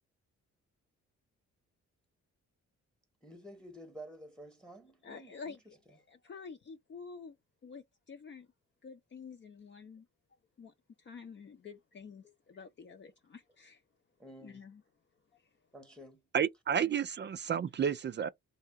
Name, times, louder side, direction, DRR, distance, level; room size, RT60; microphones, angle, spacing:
voice 1, 3.2-5.6 12.2-12.3 14.2-14.6 15.7-16.2, right 1 dB, 5° left, 0.9 m, -51 dB
voice 2, 5.0-7.4 7.6-8.5 8.8-10.1 10.6-13.8 14.4-14.8 15.3-15.5, left 5 dB, 40° left, 0.6 m, -49 dB
voice 3, 16.3-18.3, right 7 dB, 40° right, 0.4 m, -31 dB
3.3 x 2.8 x 4.5 m
cardioid pair, 110°, 29 cm